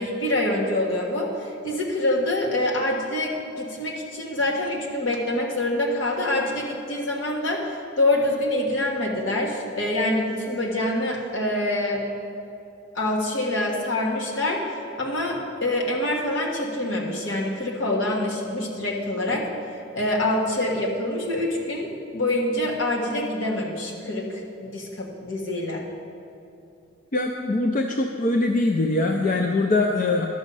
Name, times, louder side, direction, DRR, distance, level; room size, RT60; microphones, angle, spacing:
voice 1, 0.0-12.0 12.9-19.5 19.9-25.9, left 1 dB, 70° left, -1 dB, 1.5 m, -26 dB
voice 2, 27.1-30.3, left 2 dB, 40° left, 2 dB, 0.4 m, -22 dB
11.5 x 6.3 x 5.4 m, 2.7 s
head